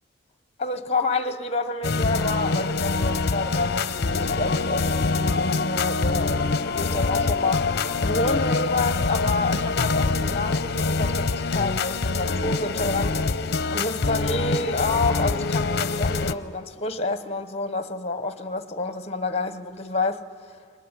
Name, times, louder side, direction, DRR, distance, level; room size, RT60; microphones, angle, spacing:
voice 1, 0.6-13.2 13.7-20.2, left 3 dB, 35° left, 1.1 m, -29 dB
sound 1, 1.8-16.3, left 3 dB, 55° left, 0.7 m, -25 dB
22.0 x 19.5 x 10.0 m
head